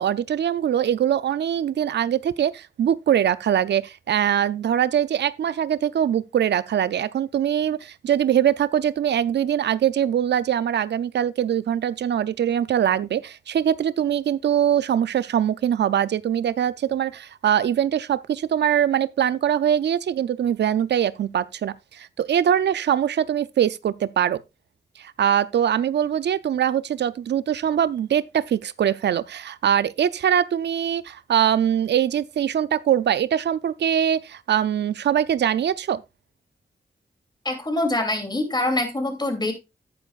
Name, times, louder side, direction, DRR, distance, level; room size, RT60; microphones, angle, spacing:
voice 1, 0.0-24.4 25.0-36.0, right 9 dB, 90° right, 0.4 m, -22 dB
voice 2, 37.4-39.5, left 1 dB, 25° left, 2.8 m, -24 dB
10.5 x 9.6 x 2.4 m
cardioid pair, 60°, 17 cm